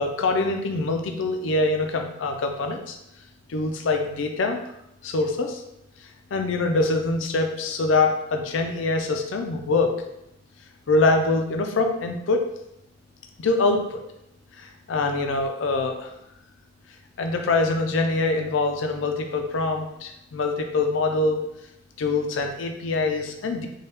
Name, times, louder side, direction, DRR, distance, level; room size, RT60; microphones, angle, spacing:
voice 1, 0.0-3.0 3.5-4.6 5.0-5.6 6.3-9.9 10.9-12.5 13.4-14.0 14.6-16.1 17.2-21.4 22.0-23.7, left 3 dB, 75° left, 5 dB, 0.5 m, -24 dB
4.5 x 2.3 x 3.2 m, 0.80 s
head